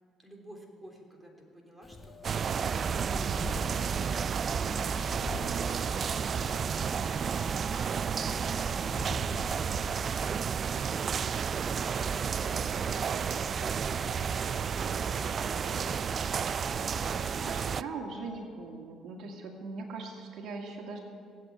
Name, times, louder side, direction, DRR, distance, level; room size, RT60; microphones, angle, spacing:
voice 1, 0.2-3.8, right 1 dB, 5° right, 0 dB, 3.7 m, -51 dB
sound 1, 1.8-9.1 11.2-18.5, left 5 dB, 55° left, 1.1 m, -49 dB
Wind, 1.8-11.7, left 2 dB, 20° left, 1.5 m, -45 dB
sound 2, 2.2-17.8, right 7 dB, 45° right, 0.3 m, -31 dB
voice 2, 17.4-21.0, right 4 dB, 70° right, 1 dB, 2.1 m, -40 dB
19.0 x 8.1 x 9.0 m, 2.2 s
cardioid pair, 85°, 0 cm